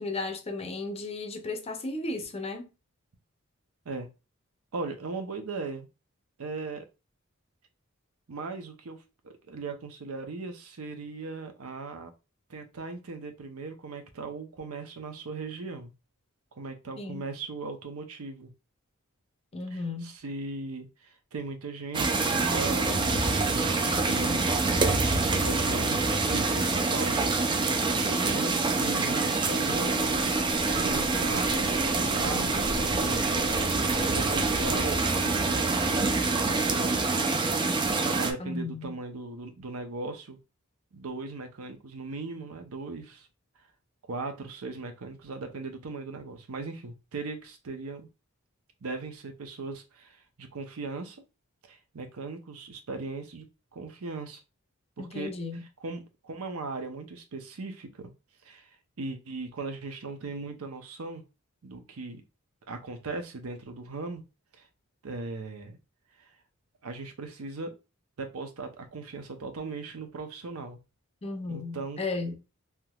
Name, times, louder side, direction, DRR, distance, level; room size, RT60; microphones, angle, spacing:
voice 1, 0.0-2.7 17.0-17.3 19.5-20.1 38.4-39.0 55.0-55.6 71.2-72.4, left 3 dB, 30° left, 0.6 m, -34 dB
voice 2, 4.7-5.9 6.4-6.9 8.3-9.0 9.2-12.1 12.5-15.9 16.5-18.5 19.7-23.7 24.0-26.0 26.3-27.4 27.8-30.1 30.5-37.7 37.9-40.4 40.9-43.3 44.1-48.1 48.8-51.2 51.6-53.5 53.7-54.4 55.0-55.3 55.8-58.1 58.4-58.7 59.0-61.2 61.6-62.2 62.7-64.2 64.5-64.7 65.0-65.8 66.2-66.3 66.8-67.7 68.2-70.8 71.5-72.0, right 3 dB, 90° right, 0.7 m, -38 dB
sound 1, 21.9-38.3, right 3 dB, 20° right, 0.4 m, -26 dB
sound 2, 29.8-35.0, equal, 45° right, 0.9 m, -39 dB
3.5 x 2.9 x 2.3 m
head